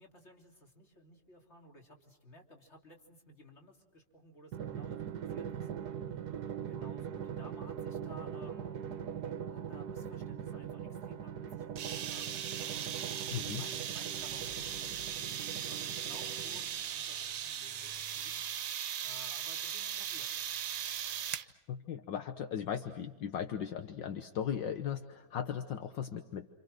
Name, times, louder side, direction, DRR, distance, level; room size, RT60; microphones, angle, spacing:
voice 1, 0.0-6.2 6.7-8.7 9.5-12.4 13.4-20.4, left 1 dB, 35° left, 2 dB, 3.6 m, -57 dB
Drum, 4.5-16.9, right 8 dB, 60° right, 1.5 m, -41 dB
sound 1, 11.8-21.5, right 9 dB, 75° right, 1.7 m, -38 dB
voice 2, 13.3-13.6 21.7-26.5, left 8 dB, 70° left, 7 dB, 1.8 m, -37 dB
sound 2, 14.2-15.7, right 2 dB, 30° right, 1.1 m, -57 dB
28.5 x 27.5 x 6.4 m, 1.2 s
omnidirectional pair, 2.1 m